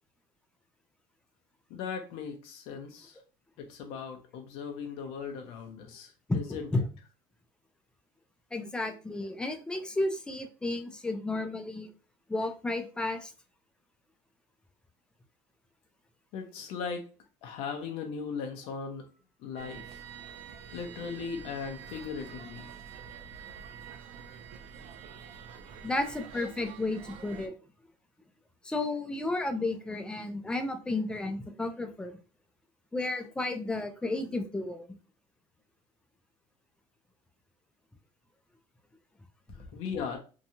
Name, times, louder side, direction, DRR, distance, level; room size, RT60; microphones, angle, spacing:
voice 1, 1.7-3.2 3.6-6.6 16.3-17.1 17.4-19.1 19.4-20.0 20.7-22.7 39.5-40.2, left 6 dB, 70° left, 3 dB, 0.6 m, -38 dB
voice 2, 8.5-11.9 12.3-13.3 25.8-27.5 28.6-32.2 32.9-34.9, left 2 dB, 10° left, 6 dB, 0.4 m, -32 dB
sound 1, 19.6-27.5, right 7 dB, 70° right, 0.5 m, -47 dB
2.8 x 2.3 x 2.7 m, 0.35 s
cardioid pair, 125°, 11 cm